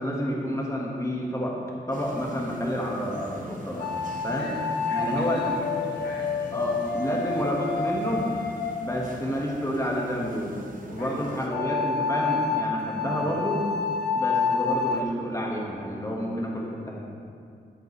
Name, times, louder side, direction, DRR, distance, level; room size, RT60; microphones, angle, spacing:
voice 1, 0.0-1.6 1.9-3.9 4.2-4.5 4.9-5.4 6.5-8.3 8.8-13.7 14.1-17.0, equal, 15° left, -3 dB, 1.4 m, -29 dB
sound 1, 1.9-11.5, right 1 dB, 45° right, 1.0 m, -44 dB
sound 2, 3.8-9.6 11.5-15.0, left 5 dB, 60° left, 0.6 m, -29 dB
voice 2, 4.3-6.3 11.0-11.5, left 2 dB, 75° left, -3 dB, 1.2 m, -39 dB
8.4 x 7.8 x 3.1 m, 2.3 s
cardioid pair, 65°, 19 cm